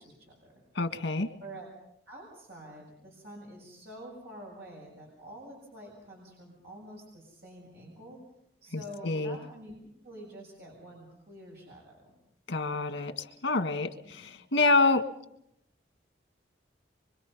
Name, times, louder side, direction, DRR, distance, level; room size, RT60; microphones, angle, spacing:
voice 1, 0.0-0.6 1.4-1.7 2.1-8.2 8.6-9.7 10.0-12.1 14.0-14.2, equal, 60° right, -2 dB, 7.0 m, -47 dB
voice 2, 0.8-1.3 8.7-9.4 12.5-15.0, left 3 dB, 90° left, 7 dB, 1.8 m, -27 dB
25.0 x 24.0 x 5.6 m, 0.78 s
head